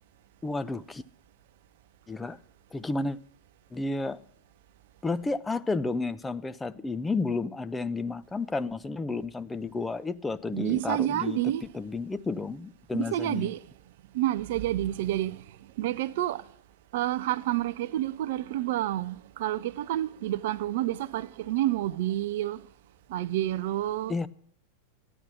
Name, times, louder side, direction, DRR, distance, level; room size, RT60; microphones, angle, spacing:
voice 1, 0.4-1.0 2.1-2.4 2.7-3.2 3.7-4.2 5.0-11.4 11.7-13.5 24.1-24.3, left 3 dB, 10° left, 0.5 m, -31 dB
voice 2, 10.5-11.7 12.9-13.6 14.1-15.4 15.8-16.4 16.9-22.6 23.1-24.1, right 14 dB, 55° right, 0.5 m, -29 dB
13.0 x 9.1 x 8.4 m
figure-of-eight pair, 90°, 0 cm